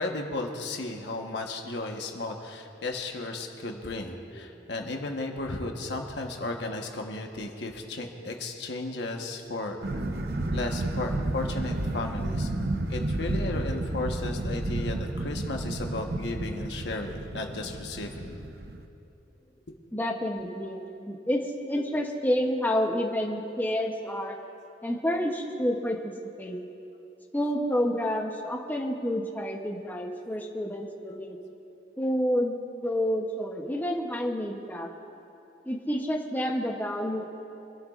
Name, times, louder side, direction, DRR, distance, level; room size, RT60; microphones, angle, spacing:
voice 1, 0.0-9.9 10.5-12.5 12.9-18.3, left 2 dB, 75° left, 3 dB, 1.2 m, -34 dB
sound 1, 9.8-18.8, right 1 dB, 60° right, 0.7 m, -31 dB
voice 2, 19.9-24.4 24.8-26.1 26.4-26.6 27.3-31.4 32.0-34.9 35.7-37.3, equal, 10° left, 1 dB, 0.8 m, -29 dB
24.5 x 12.0 x 2.5 m, 2.8 s
head